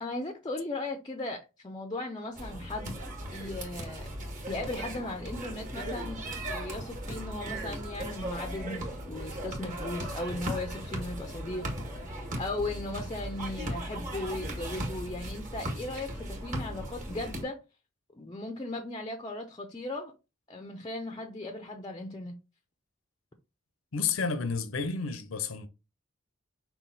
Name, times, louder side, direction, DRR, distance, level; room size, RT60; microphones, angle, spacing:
voice 1, 0.0-3.0 3.3-4.1 4.5-17.6 18.1-20.1 20.5-22.4, left 2 dB, 20° left, 0.5 m, -37 dB
sound 1, 2.4-17.4, right 1 dB, 40° right, 1.5 m, -37 dB
voice 2, 23.9-25.7, left 5 dB, 75° left, 0.7 m, -31 dB
5.7 x 2.2 x 4.0 m
head